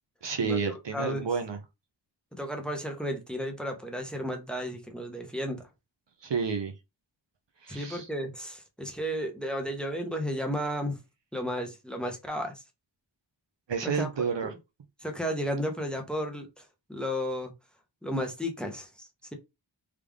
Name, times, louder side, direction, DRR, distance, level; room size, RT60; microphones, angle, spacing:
voice 1, 0.2-1.6 6.2-6.7 7.6-8.1 13.7-14.5, right 5 dB, 65° right, 0.9 m, -30 dB
voice 2, 0.9-1.3 2.3-5.6 7.7-11.0 11.3-12.5 13.9-14.1 14.4-14.5 15.0-17.5 18.0-19.3, equal, ahead, 1.2 m, -33 dB
3.6 x 3.4 x 3.6 m
wide cardioid pair, 85°, 47 cm